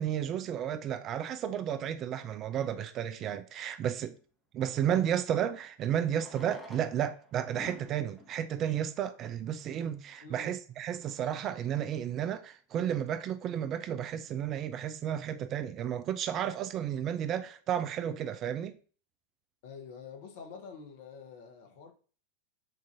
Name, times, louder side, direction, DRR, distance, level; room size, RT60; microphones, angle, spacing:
voice 1, 0.0-4.2 4.5-18.8, right 9 dB, 30° right, 0.3 m, -32 dB
Fireworks, 6.1-9.8 10.6-10.7 10.9-11.0 11.2-11.3 11.8-12.0, equal, 5° right, 0.9 m, -51 dB
voice 2, 10.2-10.6 19.6-21.9, left 5 dB, 50° left, 0.9 m, -47 dB
6.1 x 2.6 x 2.6 m
figure-of-eight pair, 90°, 0 cm